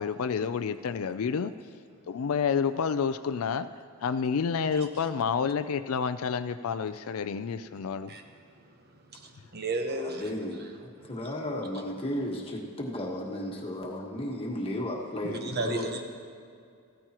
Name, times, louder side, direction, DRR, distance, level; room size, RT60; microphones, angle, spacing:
voice 1, 0.0-1.5 2.1-3.7 4.0-8.1, left 6 dB, 70° left, 11 dB, 0.4 m, -29 dB
voice 2, 9.1-10.2 11.0-11.1 15.2-16.0, right 2 dB, 45° right, 4 dB, 1.0 m, -33 dB
voice 3, 9.9-15.9, left 1 dB, 25° left, -1 dB, 1.4 m, -34 dB
15.0 x 14.0 x 3.0 m, 2.3 s
head